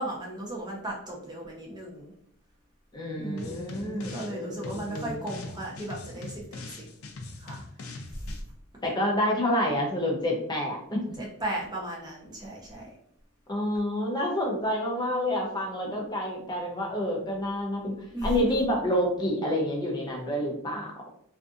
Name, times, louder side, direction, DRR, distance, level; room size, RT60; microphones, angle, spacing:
voice 1, 0.0-2.1 3.2-6.9 7.4-7.6 11.2-12.9 18.1-18.5, right 1 dB, 20° right, -3 dB, 0.7 m, -36 dB
voice 2, 2.9-5.3 8.8-11.0 13.5-17.9 18.2-21.1, left 1 dB, 20° left, -1 dB, 0.6 m, -28 dB
sound 1, 3.4-4.3 4.6-8.4, left 3 dB, 70° left, 0.5 m, -42 dB
2.6 x 2.4 x 2.4 m, 0.71 s
head